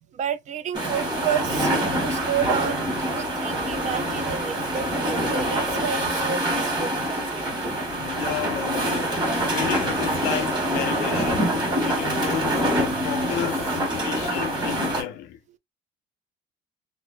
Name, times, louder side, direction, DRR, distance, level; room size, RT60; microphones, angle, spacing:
voice 1, 0.0-7.5, right 8 dB, 45° right, 0.4 m, -31 dB
sound 1, 0.7-15.0, right 1 dB, 25° right, 1.4 m, -25 dB
voice 2, 7.9-15.4, left 11 dB, 85° left, 0.6 m, -33 dB
2.6 x 2.0 x 2.4 m
cardioid pair, 110°, 17 cm